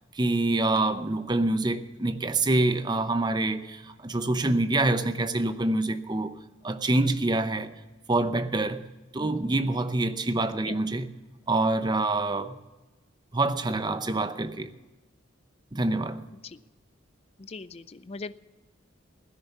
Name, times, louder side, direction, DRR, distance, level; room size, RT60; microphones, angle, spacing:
voice 1, 0.1-6.4 6.6-7.7 8.1-8.9 9.1-11.1 11.5-12.6 13.3-14.7 15.7-16.2, right 2 dB, 20° right, 0.7 m, -26 dB
voice 2, 17.4-18.3, left 3 dB, 30° left, 0.5 m, -40 dB
16.5 x 10.0 x 6.9 m
head